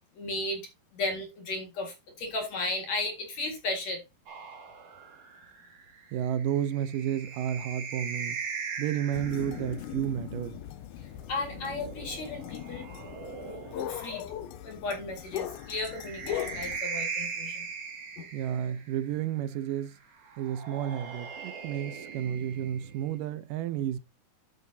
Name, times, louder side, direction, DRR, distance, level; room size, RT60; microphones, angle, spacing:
voice 1, 0.2-0.6 0.9-4.0 11.0-12.9 13.5-14.3 14.6-17.7 18.2-18.3, left 2 dB, 50° left, 2.9 m, -35 dB
sound 1, 4.3-9.8 11.2-14.2 15.5-19.0 20.2-23.2, right 5 dB, 45° right, 3.0 m, -40 dB
voice 2, 6.1-8.4 8.8-10.6 18.3-20.0 20.4-24.0, right 10 dB, 75° right, 2.1 m, -31 dB
sound 2, 9.1-16.8, left 11 dB, 90° left, 2.6 m, -39 dB
10.5 x 8.7 x 2.7 m
omnidirectional pair, 4.3 m